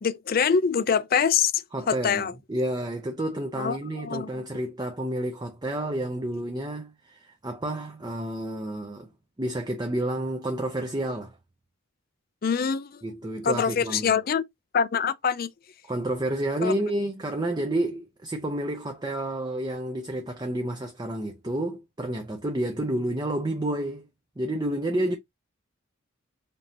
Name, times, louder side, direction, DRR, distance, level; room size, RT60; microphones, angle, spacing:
voice 1, 0.0-2.3 3.6-4.3 12.4-13.0 13.4-14.4 14.7-15.5 16.6-16.7, left 6 dB, 45° left, 0.4 m, -24 dB
voice 2, 1.7-9.1 9.4-11.4 13.0-14.1 15.9-24.0 24.4-25.2, right 1 dB, 20° right, 0.5 m, -30 dB
5.2 x 2.8 x 2.8 m
head